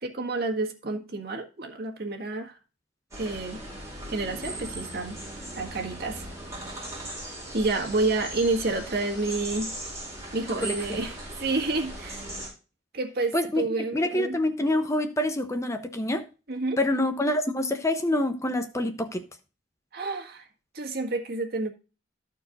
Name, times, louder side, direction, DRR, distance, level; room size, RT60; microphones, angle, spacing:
voice 1, 0.0-2.6 3.2-3.6 4.1-5.2 5.5-6.3 7.5-9.7 10.3-12.2 12.9-14.4 16.5-16.8 19.9-20.4 20.7-21.7, right 3 dB, 55° right, 1.9 m, -29 dB
sound 1, 3.1-12.5, right 1 dB, 15° right, 4.7 m, -38 dB
voice 2, 10.6-11.0 13.3-13.7 13.9-16.2 16.8-19.2, left 1 dB, 15° left, 0.7 m, -26 dB
13.5 x 4.6 x 3.9 m
head